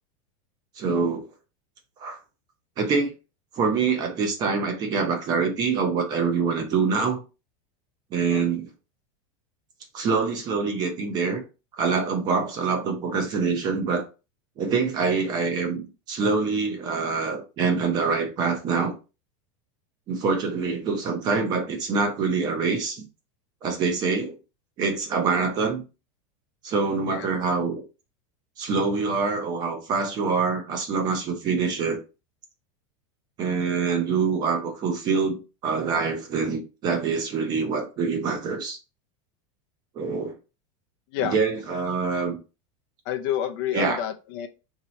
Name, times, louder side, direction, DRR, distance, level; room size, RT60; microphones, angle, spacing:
voice 1, 0.8-1.3 2.0-2.2 2.8-3.1 3.5-7.2 8.1-8.7 9.9-11.4 11.8-14.0 14.6-18.9 20.1-23.1 23.6-24.3 24.8-25.8 26.6-27.8 28.6-32.0 33.4-38.8 40.0-40.4 41.2-42.4 43.7-44.0, right 5 dB, 25° right, 0.7 m, -25 dB
voice 2, 43.1-44.5, left 10 dB, 45° left, 0.5 m, -29 dB
2.9 x 2.8 x 4.2 m
supercardioid pair, 170°, 17 cm